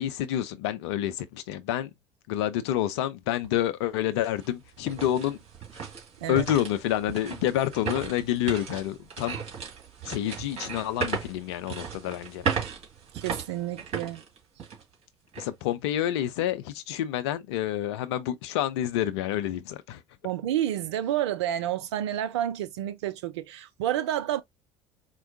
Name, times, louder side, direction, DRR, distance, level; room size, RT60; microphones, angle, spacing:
voice 1, 0.0-1.9 2.3-5.4 6.3-9.4 10.1-12.5 15.4-20.0, left 12 dB, 65° left, 0.6 m, -28 dB
sound 1, 3.4-3.5 4.0-14.9 15.3-15.5 16.1-16.4, right 6 dB, 45° right, 1.9 m, -36 dB
voice 2, 13.2-14.2 20.2-24.4, right 12 dB, 70° right, 0.6 m, -29 dB
4.5 x 2.2 x 2.6 m
figure-of-eight pair, 55°, 15 cm